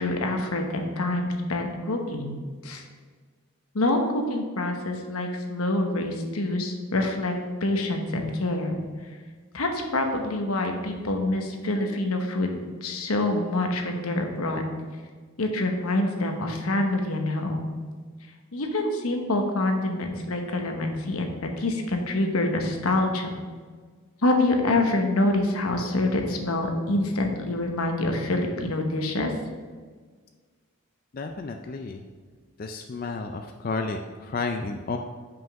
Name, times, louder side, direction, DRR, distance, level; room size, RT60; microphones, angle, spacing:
voice 1, 0.0-2.8 3.7-7.3 7.6-8.8 9.5-12.5 12.8-14.7 15.4-17.7 18.5-23.4 24.2-29.3, left 2 dB, 85° left, 3 dB, 1.0 m, -26 dB
voice 2, 31.1-32.0 32.6-35.0, left 3 dB, 40° left, 4 dB, 0.3 m, -32 dB
5.7 x 5.2 x 5.8 m, 1.5 s
head